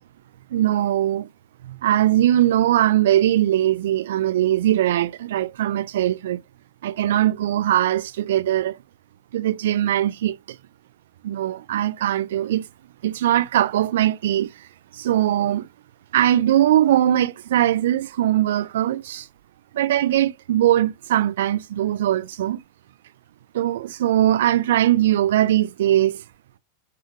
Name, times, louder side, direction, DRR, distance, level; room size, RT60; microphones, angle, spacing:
voice 1, 0.5-1.3 1.6-6.4 6.8-8.8 9.3-10.4 11.2-12.6 13.0-14.5 14.9-15.7 16.1-19.3 19.7-22.6 23.5-26.2, right 12 dB, 60° right, 0.4 m, -20 dB
3.7 x 2.2 x 2.4 m
figure-of-eight pair, 90°, 0 cm